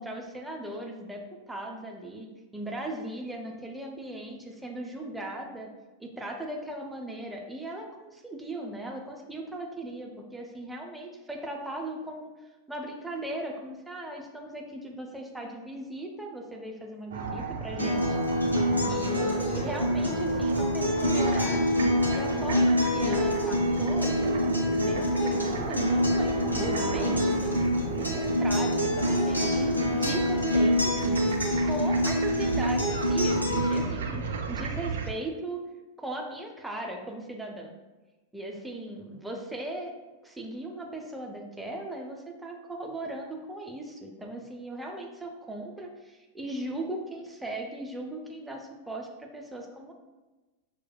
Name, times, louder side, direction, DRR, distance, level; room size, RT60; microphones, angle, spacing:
voice 1, 0.0-5.7 6.0-18.2 18.9-21.8 22.1-27.5 27.8-30.9 31.6-35.6 36.0-37.7 38.3-39.9 40.2-49.9, right 1 dB, 5° right, 0 dB, 0.5 m, -38 dB
sound 1, 17.1-35.1, right 5 dB, 60° right, 0.4 m, -35 dB
Acoustic guitar, 17.8-33.8, equal, 90° left, 0.8 m, -26 dB
6.2 x 2.2 x 2.2 m, 1.2 s
figure-of-eight pair, 90°, 0 cm